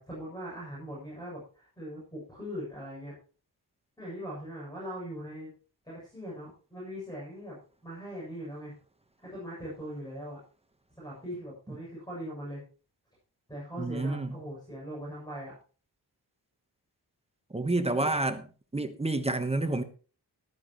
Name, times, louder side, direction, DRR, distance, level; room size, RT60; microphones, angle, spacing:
voice 1, 0.0-3.1 4.0-5.5 5.8-7.6 7.8-8.7 9.2-10.4 11.0-12.6 13.5-15.5 17.9-18.2, equal, 10° left, 7.5 m, -40 dB
voice 2, 13.8-14.3 17.5-18.4 18.7-19.8, right 2 dB, 15° right, 1.0 m, -29 dB
14.5 x 12.5 x 3.0 m
wide cardioid pair, 150°, 41 cm